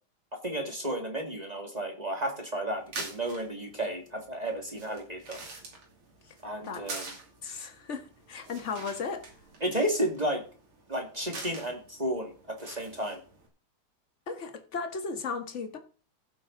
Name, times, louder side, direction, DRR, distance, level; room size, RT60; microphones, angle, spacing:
voice 1, 0.3-5.4 6.4-7.2 9.6-10.4 10.9-13.2, right 1 dB, 20° right, 1.9 m, -32 dB
sound 1, 2.7-13.5, right 3 dB, 80° right, 3.5 m, -46 dB
voice 2, 7.4-9.3 14.3-15.8, left 5 dB, 40° left, 1.4 m, -35 dB
15.5 x 7.8 x 3.8 m
omnidirectional pair, 2.4 m